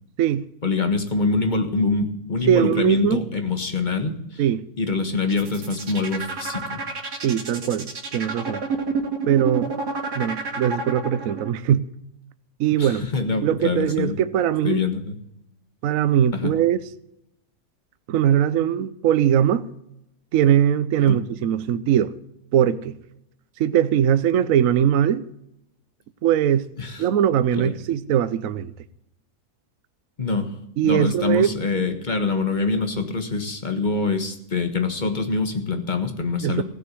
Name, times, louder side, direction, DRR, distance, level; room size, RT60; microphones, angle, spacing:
voice 1, 0.6-4.4 4.8-6.8 12.8-14.2 14.6-15.1 16.4-16.5 21.1-21.2 26.8-27.1 27.5-27.7 30.2-30.6 30.8-36.6, left 4 dB, 30° left, 1.6 m, -25 dB
voice 2, 2.5-3.2 4.4-4.7 7.2-8.6 9.3-9.7 10.1-11.8 12.6-13.0 13.4-14.8 15.8-16.8 18.1-19.7 20.3-22.1 22.5-23.0 23.6-25.2 26.2-26.7 27.0-28.7 30.8-31.5 36.4-36.6, right 10 dB, 65° right, 1.0 m, -20 dB
sound 1, 5.2-11.5, right 4 dB, 85° right, 2.4 m, -29 dB
16.0 x 6.7 x 9.2 m
omnidirectional pair, 1.7 m